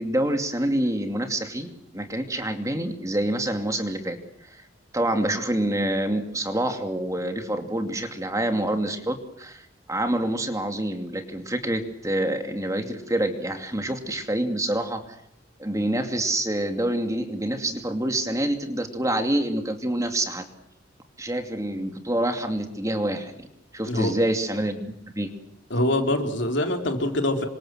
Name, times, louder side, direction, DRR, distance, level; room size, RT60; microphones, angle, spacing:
voice 1, 0.0-4.6 4.9-15.0 15.6-20.4 21.2-23.5 23.7-25.3, right 1 dB, 15° right, 6 dB, 2.6 m, -27 dB
voice 2, 25.7-27.4, left 1 dB, 65° left, 5 dB, 3.9 m, -24 dB
27.5 x 25.0 x 7.7 m, 0.72 s
head